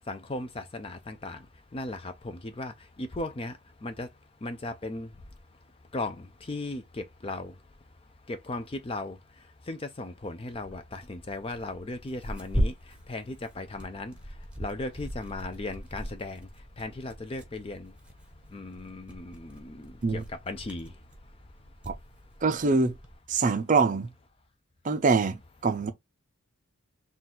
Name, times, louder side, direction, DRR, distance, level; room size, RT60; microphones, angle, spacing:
voice 1, 0.1-1.4 1.7-2.1 2.4-2.7 3.0-3.5 3.8-4.1 4.4-5.1 5.9-7.5 8.3-9.2 9.7-12.7 13.1-14.1 14.6-16.5 16.8-17.9 18.5-20.9, left 2 dB, 25° left, 0.4 m, -36 dB
Tearing, 10.5-23.2, equal, 5° right, 0.8 m, -39 dB
voice 2, 22.4-23.0 23.3-24.1 24.8-25.9, right 4 dB, 35° right, 0.4 m, -24 dB
3.8 x 2.3 x 4.2 m
head